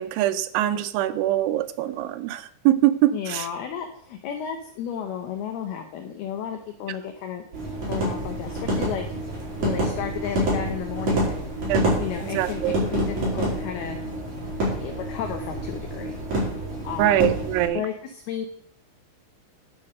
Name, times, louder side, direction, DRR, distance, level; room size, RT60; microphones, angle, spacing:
voice 1, 0.0-3.5 11.7-11.9 12.3-12.8 17.0-17.8, right 13 dB, 80° right, 10 dB, 3.0 m, -23 dB
voice 2, 3.1-7.4 7.9-9.1 9.6-11.4 12.0-14.0 14.7-16.2 16.8-17.2 17.7-18.5, left 9 dB, 75° left, 4 dB, 2.4 m, -33 dB
sound 1, 7.5-17.7, right 1 dB, 40° right, 5.4 m, -27 dB
10.5 x 6.6 x 6.3 m, 0.64 s
omnidirectional pair, 5.5 m